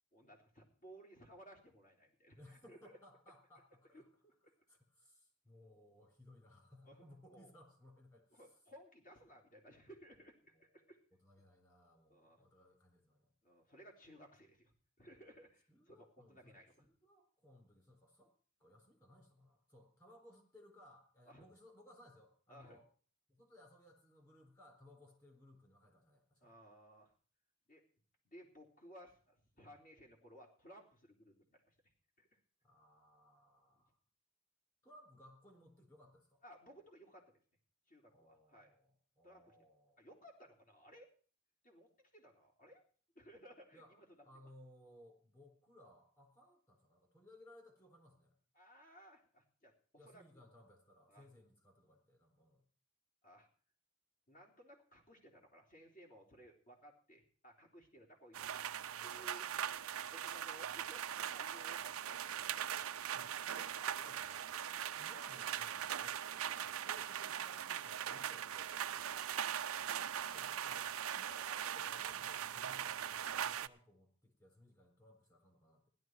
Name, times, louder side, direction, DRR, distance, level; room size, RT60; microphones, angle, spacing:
voice 1, 0.1-3.0 3.9-4.5 6.8-7.0 7.3-7.5 8.3-11.0 12.1-12.4 13.4-16.9 21.3-21.5 22.5-22.8 26.4-27.1 27.7-27.8 28.2-31.9 32.2-32.4 33.8-33.9 36.4-37.4 37.9-38.7 39.2-39.6 40.0-41.1 41.6-42.8 43.2-44.3 48.5-50.4 51.1-51.3 53.2-53.5 54.3-58.6 59.0-59.5 59.8-62.9 69.0-69.3, equal, 40° left, 0 dB, 3.7 m, -60 dB
voice 2, 2.4-4.1 4.7-8.5 10.8-10.9 11.2-13.3 15.7-18.3 18.6-22.8 23.3-26.5 32.6-34.0 34.8-36.4 38.1-40.0 43.7-43.9 44.2-48.4 50.0-52.6 59.0-59.3 63.1-64.6 64.9-68.8 69.8-75.9, left 1 dB, 15° left, 3 dB, 4.0 m, -62 dB
sound 1, 58.3-73.7, right 9 dB, 85° right, 0.6 m, -41 dB
16.0 x 12.0 x 4.6 m, 0.43 s
head